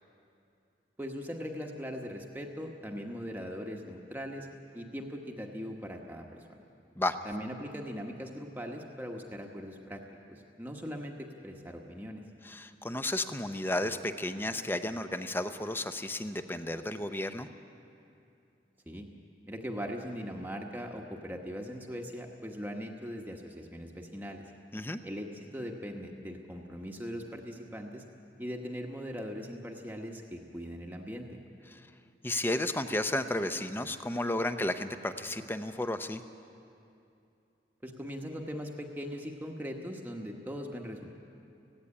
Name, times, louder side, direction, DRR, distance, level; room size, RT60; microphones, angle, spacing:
voice 1, 1.0-4.5 4.7-6.4 7.2-10.0 10.3-12.2 18.9-19.1 19.5-24.4 25.0-28.0 28.4-31.4 37.8-41.2, equal, 10° right, 1 dB, 1.1 m, -40 dB
voice 2, 12.4-17.5 24.7-25.0 31.7-31.8 32.2-36.2, left 1 dB, 10° left, 9 dB, 0.7 m, -33 dB
17.0 x 16.0 x 9.8 m, 2.6 s
head